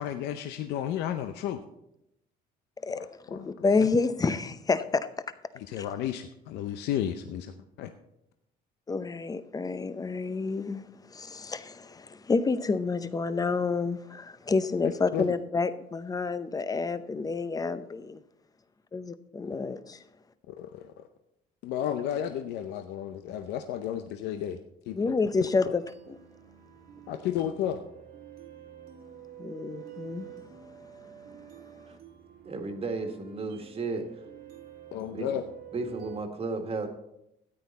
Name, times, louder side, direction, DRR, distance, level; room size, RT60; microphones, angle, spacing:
voice 1, 0.0-1.6 2.9-3.5 3.7-3.9 5.5-7.9 14.8-15.3 20.5-21.1 21.6-24.6 24.9-25.1 27.1-27.8 34.9-35.4, left 10 dB, 85° left, 0.7 m, -33 dB
voice 2, 2.8-5.1 8.9-18.2 19.4-20.0 25.0-25.8 29.4-30.3, left 4 dB, 20° left, 0.6 m, -29 dB
sound 1, 25.6-36.2, right 11 dB, 65° right, 1.6 m, -48 dB
voice 3, 32.4-34.2 35.1-35.3 35.7-36.9, right 3 dB, 35° right, 1.6 m, -33 dB
13.0 x 9.1 x 4.1 m
cardioid pair, 110°, 17 cm